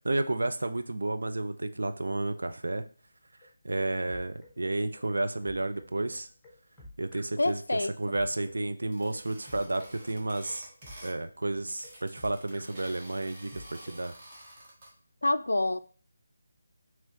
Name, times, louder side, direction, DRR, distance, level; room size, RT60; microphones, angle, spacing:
voice 1, 0.0-2.8 3.6-6.3 7.0-7.6 8.0-10.7 11.0-14.1, right 2 dB, 75° right, 0.5 m, -31 dB
sound 1, 3.4-14.0, left 1 dB, 5° left, 0.9 m, -52 dB
voice 2, 7.4-7.9 15.2-15.8, left 2 dB, 80° left, 0.3 m, -27 dB
sound 2, 8.9-11.2 11.5-14.9, right 1 dB, 30° right, 1.4 m, -50 dB
4.6 x 3.0 x 2.8 m
figure-of-eight pair, 160°, 0 cm